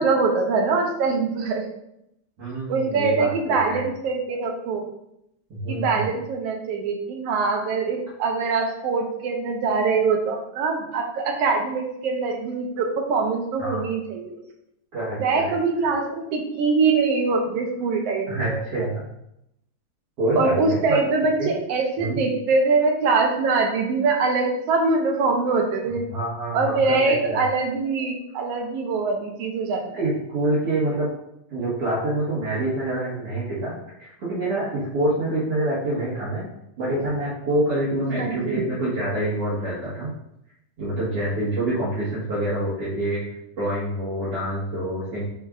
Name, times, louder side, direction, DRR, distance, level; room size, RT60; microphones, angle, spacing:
voice 1, 0.0-1.6 2.7-4.8 5.7-14.4 15.2-18.6 20.4-26.1 26.5-29.8 38.1-38.7, right 4 dB, 70° right, 2 dB, 1.6 m, -23 dB
voice 2, 2.4-3.8 5.5-6.1 13.6-13.8 14.9-15.4 18.3-19.1 20.2-21.0 21.4-21.5 22.0-22.2 26.1-27.4 29.9-31.1 31.5-36.5 36.8-40.1 40.8-43.2 43.6-45.2, right 1 dB, 55° right, -10 dB, 2.4 m, -26 dB
8.8 x 4.4 x 2.5 m, 0.80 s
omnidirectional pair, 3.4 m